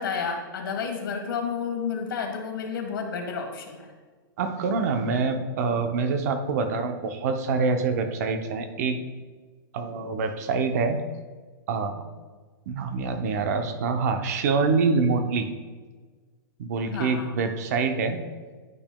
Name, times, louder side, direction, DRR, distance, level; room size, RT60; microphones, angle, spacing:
voice 1, 0.0-3.9 16.9-17.3, left 6 dB, 75° left, 3 dB, 1.4 m, -31 dB
voice 2, 4.4-9.0 9.7-11.0 11.7-12.0 12.7-15.5 16.6-18.2, right 4 dB, 45° right, 7 dB, 0.6 m, -25 dB
10.5 x 5.9 x 2.2 m, 1.4 s
supercardioid pair, 170°, 12 cm